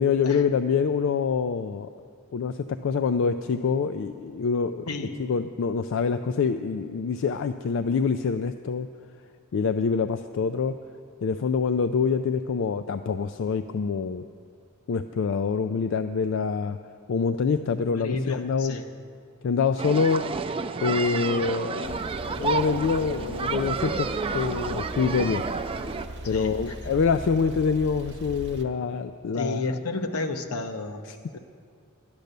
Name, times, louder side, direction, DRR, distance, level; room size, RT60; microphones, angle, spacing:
voice 1, 0.0-1.9 2.3-4.9 5.2-8.9 9.5-10.7 11.2-14.2 14.9-16.8 17.1-18.7 19.4-20.3 20.8-24.1 24.3-25.4 26.2-29.7 31.1-31.2, left 5 dB, 55° left, 10 dB, 0.3 m, -25 dB
voice 2, 4.9-5.2 17.9-18.9 26.2-26.7 29.3-31.0 31.3-31.4, left 2 dB, 75° left, 7 dB, 0.9 m, -32 dB
sound 1, 19.8-26.1, right 4 dB, 25° right, 0.4 m, -30 dB
Male speech man speaking / Car / Idling, 21.8-28.6, right 1 dB, 50° right, 1.0 m, -39 dB
11.5 x 10.5 x 6.7 m, 2.2 s
head